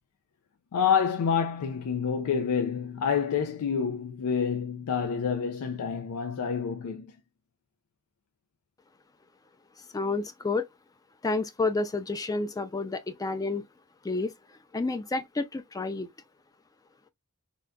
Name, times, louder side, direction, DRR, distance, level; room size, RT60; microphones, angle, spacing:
voice 1, 0.7-7.1, left 7 dB, 85° left, 0.4 m, -28 dB
voice 2, 9.9-10.7 11.2-13.6 14.0-14.3 14.7-16.1, left 3 dB, 15° left, 0.3 m, -30 dB
3.7 x 2.2 x 2.2 m
head